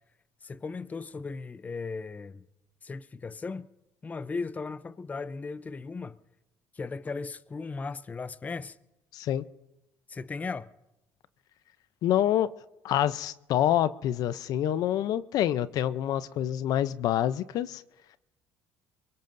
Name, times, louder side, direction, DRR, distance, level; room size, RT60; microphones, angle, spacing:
voice 1, 0.4-2.4 2.8-3.7 4.0-6.2 6.7-8.8 10.1-10.7, left 4 dB, 20° left, 0.5 m, -37 dB
voice 2, 9.1-9.4 12.0-12.5 12.8-17.8, left 11 dB, 65° left, 0.6 m, -27 dB
24.0 x 22.5 x 2.6 m
cardioid pair, 100°, 7 cm